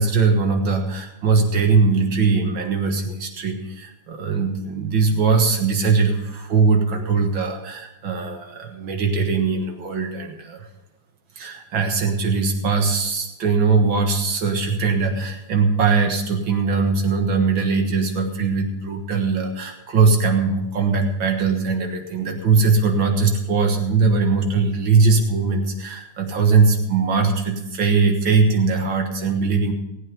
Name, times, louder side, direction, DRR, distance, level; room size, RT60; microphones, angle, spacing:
voice 1, 0.0-10.7 11.4-29.7, right 4 dB, 90° right, 3 dB, 2.3 m, -20 dB
18.5 x 8.6 x 5.3 m, 0.91 s
omnidirectional pair, 2.1 m